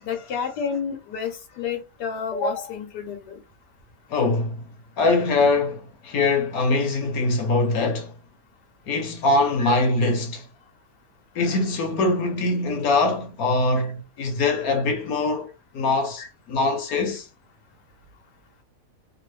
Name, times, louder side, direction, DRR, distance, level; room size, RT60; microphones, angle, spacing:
voice 1, 0.0-3.4 9.6-9.7 13.8-13.9 16.2-16.3, left 5 dB, 85° left, 1.4 m, -30 dB
voice 2, 4.1-4.6 5.0-8.1 8.9-10.5 11.3-15.5 15.7-17.3, left 3 dB, 65° left, 1.2 m, -23 dB
3.0 x 2.4 x 3.1 m
omnidirectional pair, 1.7 m